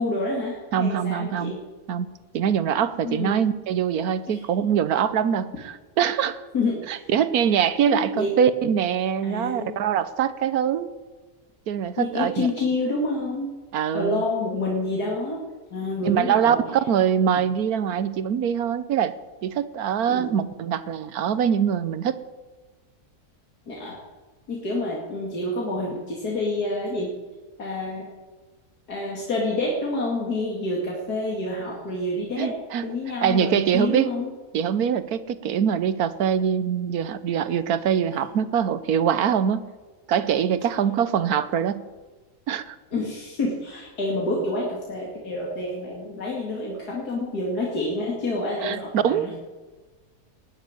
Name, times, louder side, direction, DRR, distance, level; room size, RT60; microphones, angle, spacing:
voice 1, 0.0-1.6 3.0-3.4 4.3-4.4 6.5-7.1 7.9-8.4 9.2-9.7 12.0-13.5 13.9-15.4 15.7-16.6 20.1-20.3 23.7-24.0 24.5-27.1 27.6-28.1 28.9-32.5 32.8-34.3 42.9-49.3, left 2 dB, 90° left, -3 dB, 2.8 m, -28 dB
voice 2, 0.7-1.5 1.9-2.1 2.3-6.4 6.9-10.9 11.7-12.5 13.7-14.2 16.0-19.1 19.4-22.2 32.4-32.8 33.2-34.1 34.5-39.6 40.1-41.8 42.5-42.8 48.6-49.3, right 8 dB, 75° right, 14 dB, 1.3 m, -23 dB
19.0 x 7.3 x 9.7 m, 1.3 s
omnidirectional pair, 1.6 m